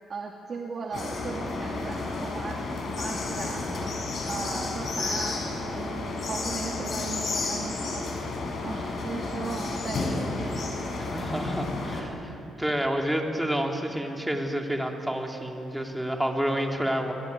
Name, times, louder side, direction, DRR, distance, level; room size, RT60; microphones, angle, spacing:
voice 1, 0.1-2.7 3.0-4.0 4.3-5.4 5.8-8.1 8.6-10.7, right 4 dB, 40° right, 1 dB, 2.2 m, -37 dB
sound 1, 0.9-12.0, left 3 dB, 50° left, 5.8 m, -31 dB
voice 2, 11.1-12.3 12.6-17.1, equal, 5° right, 2 dB, 3.3 m, -29 dB
26.5 x 21.5 x 9.8 m, 2.8 s
cardioid pair, 100°, 0 cm